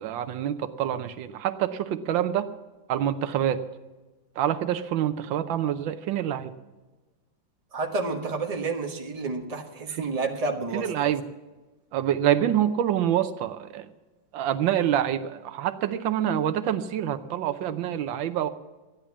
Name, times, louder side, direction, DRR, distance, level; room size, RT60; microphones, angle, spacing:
voice 1, 0.0-2.5 2.9-3.6 4.4-6.5 9.9-10.1 10.7-11.2 11.9-13.9 14.3-18.5, right 10 dB, 85° right, 10 dB, 1.5 m, -26 dB
voice 2, 7.7-11.1, right 3 dB, 20° right, 3 dB, 1.2 m, -30 dB
13.5 x 10.0 x 7.2 m, 1.2 s
omnidirectional pair, 2.0 m